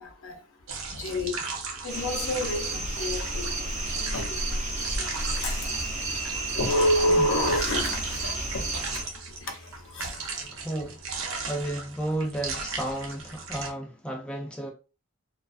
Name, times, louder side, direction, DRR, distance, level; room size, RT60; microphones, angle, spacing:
voice 1, 0.0-10.7 11.3-11.5, left 1 dB, 65° left, 0.6 m, -30 dB
sound 1, 0.7-13.7, right 4 dB, 75° right, 0.6 m, -37 dB
sound 2, 1.9-9.0, right 2 dB, 35° right, 0.7 m, -31 dB
voice 2, 10.5-11.0 11.5-14.7, right 1 dB, 5° left, 0.4 m, -32 dB
2.3 x 2.3 x 2.3 m
head